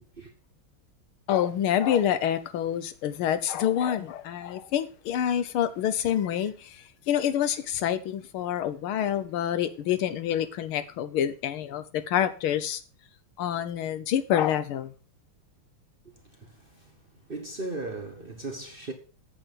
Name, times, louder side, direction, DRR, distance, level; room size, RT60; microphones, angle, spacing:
voice 1, 1.3-12.8 13.4-14.9, left 10 dB, 80° left, 1.7 m, -27 dB
voice 2, 16.0-16.9 17.3-18.9, right 2 dB, 35° right, 1.0 m, -37 dB
8.8 x 7.8 x 5.3 m
omnidirectional pair, 2.3 m